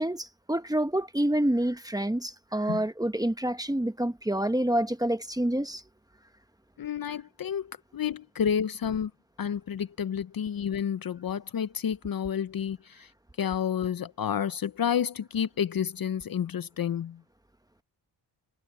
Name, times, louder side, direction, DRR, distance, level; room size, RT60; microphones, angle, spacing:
voice 1, 0.0-5.8, right 1 dB, 10° right, 1.0 m, -27 dB
voice 2, 6.8-9.1 9.4-13.1 13.4-17.2, left 8 dB, 50° left, 0.7 m, -30 dB
wide cardioid pair, 115°, 44 cm